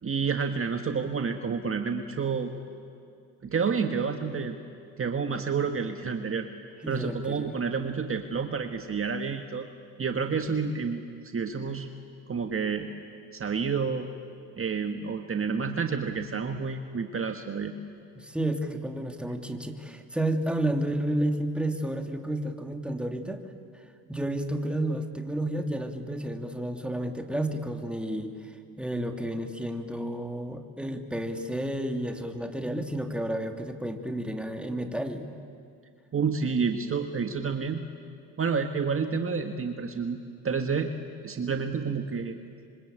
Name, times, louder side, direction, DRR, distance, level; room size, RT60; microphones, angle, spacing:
voice 1, 0.0-2.5 3.4-4.6 5.0-6.5 6.9-9.7 10.0-11.0 11.3-11.9 12.3-12.9 13.3-14.1 14.6-17.7 36.1-37.8 38.4-40.2 40.4-40.9 41.2-42.4, right 5 dB, 35° right, 6 dB, 1.7 m, -29 dB
voice 2, 6.8-7.5 18.1-23.4 24.1-28.3 28.8-35.3, right 1 dB, 5° right, 4 dB, 2.8 m, -31 dB
26.5 x 24.5 x 9.0 m, 2.3 s
supercardioid pair, 70°, 40 cm